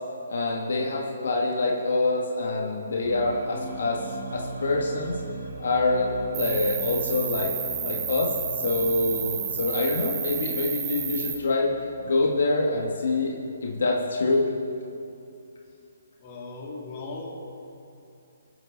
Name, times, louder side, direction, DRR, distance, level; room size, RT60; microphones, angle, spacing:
voice 1, 0.3-4.0 4.3-5.2 5.6-7.5 7.8-8.3 8.6-11.7 12.0-14.5, left 2 dB, 70° left, -1 dB, 1.6 m, -25 dB
sound 1, 3.0-12.6, right 4 dB, 80° right, 3.3 m, -40 dB
Cricket, 6.3-11.3, right 7 dB, 20° right, 1.1 m, -31 dB
voice 2, 8.1-8.5 16.2-17.6, left 2 dB, 35° left, -3 dB, 2.5 m, -38 dB
22.5 x 7.6 x 4.0 m, 2.7 s
hypercardioid pair, 160°, 0 cm